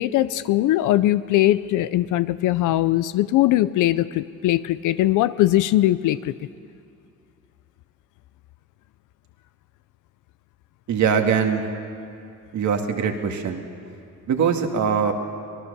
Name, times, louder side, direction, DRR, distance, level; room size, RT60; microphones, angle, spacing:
voice 1, 0.0-6.3, left 14 dB, 90° left, 14 dB, 0.6 m, -20 dB
voice 2, 10.9-11.7 12.5-13.6 14.3-15.1, right 6 dB, 70° right, 4 dB, 2.2 m, -22 dB
24.5 x 19.0 x 6.9 m, 2.6 s
cardioid pair, 90°, 30 cm